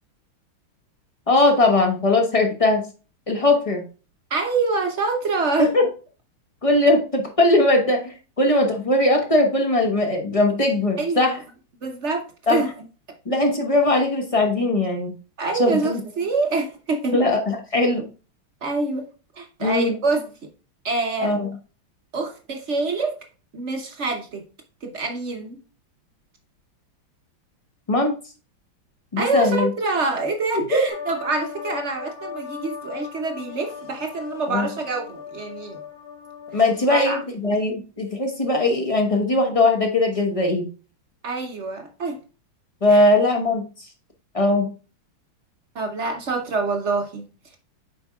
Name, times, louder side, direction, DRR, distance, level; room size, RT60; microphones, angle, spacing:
voice 1, 1.3-2.9 3.3-3.9 5.6-5.9 6.6-11.4 12.5-12.7 13.2-15.2 15.5-16.0 17.1-18.1 19.6-20.0 21.2-21.5 27.9-28.1 29.1-29.7 30.5-30.8 34.5-34.7 36.5-40.7 42.8-43.6 44.3-44.7, left 2 dB, 35° left, 0.6 m, -20 dB
voice 2, 4.3-5.7 11.0-11.4 11.8-12.7 15.4-17.1 18.6-19.1 19.4-20.3 20.8-21.4 22.1-23.2 23.5-24.4 24.8-25.6 29.2-35.8 36.9-37.2 41.2-42.2 42.9-43.0 45.7-47.2, right 3 dB, 55° right, 0.7 m, -26 dB
sound 1, 30.9-37.3, left 7 dB, 75° left, 2.1 m, -38 dB
7.7 x 5.2 x 2.3 m
omnidirectional pair, 2.3 m